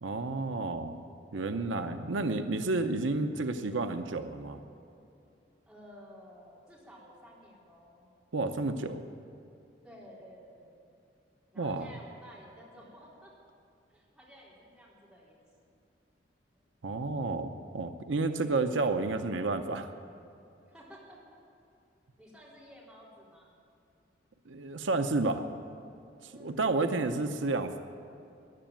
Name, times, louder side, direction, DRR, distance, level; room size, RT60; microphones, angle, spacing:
voice 1, 0.0-1.0 1.3-4.6 8.3-9.0 11.6-11.9 16.8-19.9 24.5-25.4 26.4-27.8, right 3 dB, 85° right, 8 dB, 0.8 m, -31 dB
voice 2, 1.3-2.0 5.7-8.1 9.8-10.9 11.5-13.3 13.9-15.5 18.3-18.4 20.7-21.2 22.2-23.6 26.3-27.1, equal, 5° right, -6 dB, 3.8 m, -53 dB
14.5 x 10.5 x 9.1 m, 2.7 s
head